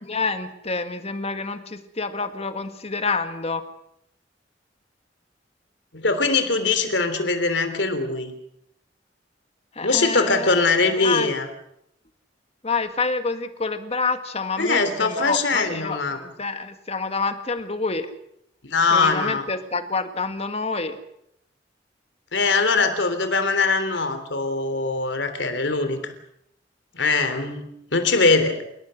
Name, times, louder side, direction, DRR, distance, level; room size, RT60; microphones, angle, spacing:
voice 1, 0.0-3.6 9.8-10.6 11.0-11.3 12.6-18.1 18.9-21.0, left 4 dB, 35° left, 8 dB, 1.8 m, -28 dB
voice 2, 5.9-8.3 9.8-11.5 14.6-16.2 18.6-19.4 22.3-26.1 26.9-27.6 27.9-28.6, left 3 dB, 70° left, 9 dB, 3.4 m, -22 dB
29.5 x 17.5 x 6.5 m, 0.77 s
head